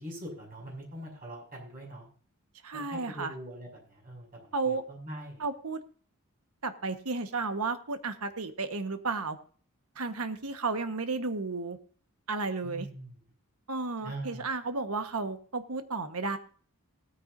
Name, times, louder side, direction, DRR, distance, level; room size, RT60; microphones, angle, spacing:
voice 1, 0.0-2.0 2.7-5.4 12.6-13.2 14.0-14.4, right 1 dB, 40° right, -1 dB, 6.0 m, -42 dB
voice 2, 2.6-3.3 4.5-4.8 5.4-5.8 6.6-9.4 10.0-11.8 12.3-12.9 13.7-16.4, right 3 dB, 85° right, 9 dB, 1.3 m, -33 dB
19.0 x 9.5 x 2.6 m, 0.43 s
head